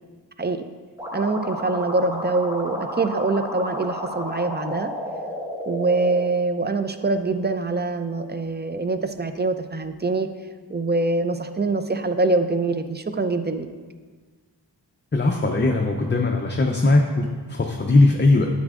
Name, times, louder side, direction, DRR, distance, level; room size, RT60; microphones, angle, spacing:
voice 1, 0.4-0.7 1.1-4.9 5.7-10.3 10.7-13.7, right 3 dB, 25° right, 9 dB, 0.4 m, -24 dB
sound 1, 1.0-6.2, equal, 5° right, 1.4 m, -32 dB
voice 2, 15.1-18.5, left 2 dB, 25° left, 2 dB, 0.5 m, -19 dB
9.6 x 7.4 x 2.5 m, 1.4 s
wide cardioid pair, 50°, 43 cm